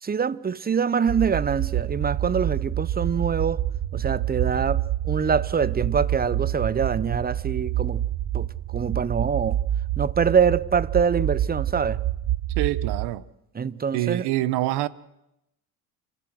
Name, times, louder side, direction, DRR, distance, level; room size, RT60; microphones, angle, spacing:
voice 1, 0.0-3.6 3.9-8.1 8.3-9.6 10.0-12.0 13.5-14.3, right 6 dB, 25° right, 0.8 m, -25 dB
sound 1, 1.1-13.1, right 12 dB, 55° right, 0.9 m, -27 dB
voice 2, 12.6-13.2 13.9-14.9, right 15 dB, 75° right, 1.0 m, -25 dB
30.0 x 15.0 x 6.3 m
supercardioid pair, 75°, 40 cm